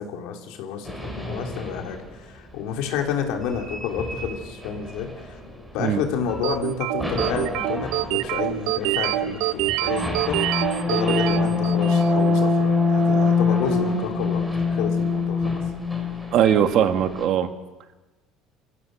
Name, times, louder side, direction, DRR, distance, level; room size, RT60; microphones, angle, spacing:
voice 1, 0.0-5.4 5.7-15.6, left 7 dB, 75° left, 2 dB, 3.1 m, -30 dB
sound 1, 0.8-2.1 3.4-5.9 6.2-6.6 7.0-17.2, left 3 dB, 5° right, 3.5 m, -25 dB
sound 2, 6.4-12.2, right 15 dB, 80° right, 0.7 m, -26 dB
voice 2, 16.3-17.5, right 9 dB, 55° right, 8 dB, 1.6 m, -20 dB
27.0 x 15.0 x 6.7 m, 1.2 s
cardioid pair, 145°, 0 cm